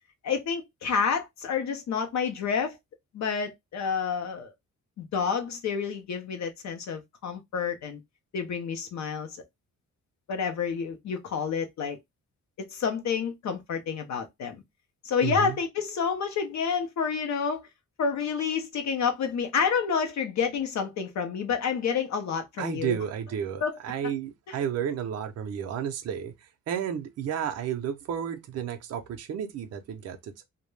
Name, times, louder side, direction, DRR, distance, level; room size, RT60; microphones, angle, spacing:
voice 1, 0.2-2.8 3.1-4.5 5.0-8.0 8.3-9.4 10.3-12.0 12.6-14.6 15.0-17.7 18.0-23.0 23.6-23.8 24.5-24.6, left 6 dB, 60° left, 0.5 m, -29 dB
voice 2, 15.2-15.6 22.6-30.4, right 8 dB, 55° right, 0.5 m, -32 dB
2.2 x 2.0 x 3.0 m
wide cardioid pair, 170°, 32 cm